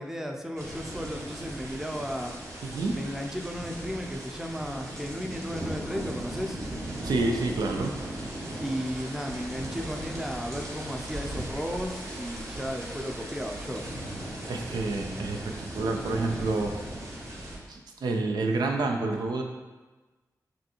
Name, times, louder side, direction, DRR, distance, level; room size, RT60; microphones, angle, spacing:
voice 1, 0.0-2.3 3.0-6.6 8.6-13.9, equal, 5° right, 2 dB, 0.5 m, -34 dB
sound 1, 0.6-17.6, right 1 dB, 45° right, 1.0 m, -37 dB
voice 2, 2.6-3.0 7.0-7.9 14.5-16.7 17.7-19.4, right 3 dB, 85° right, 3 dB, 0.4 m, -28 dB
4.9 x 2.3 x 2.9 m, 1.2 s
cardioid pair, 50°, 7 cm